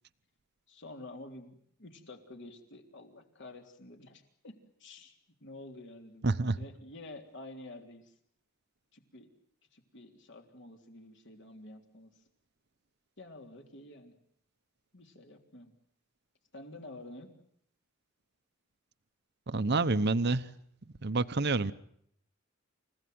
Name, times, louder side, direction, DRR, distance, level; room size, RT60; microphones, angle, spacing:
voice 1, 0.7-6.3 6.6-8.1 8.9-9.3 9.7-12.1 13.2-14.2 14.9-15.7 16.5-17.3, left 2 dB, 60° left, 4 dB, 3.6 m, -49 dB
voice 2, 6.2-6.6 19.5-20.5 21.0-21.7, right 3 dB, 55° right, 13 dB, 0.9 m, -28 dB
29.0 x 16.5 x 9.5 m, 0.70 s
head